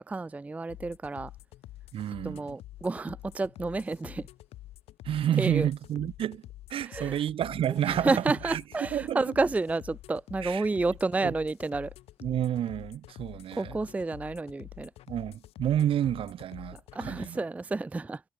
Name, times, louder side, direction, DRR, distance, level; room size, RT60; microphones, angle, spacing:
voice 1, 0.1-1.3 2.2-4.3 5.4-5.7 6.9-7.2 7.9-11.9 13.6-14.9 16.9-18.2, right 3 dB, 15° right, 0.4 m, -30 dB
sound 1, 0.7-17.4, left 15 dB, 80° left, 6.9 m, -48 dB
voice 2, 1.9-2.6 5.0-6.4 6.7-9.3 10.4-10.7 11.2-11.3 12.2-13.8 15.1-17.4, right 11 dB, 60° right, 1.4 m, -30 dB
cardioid pair, 85°, 10 cm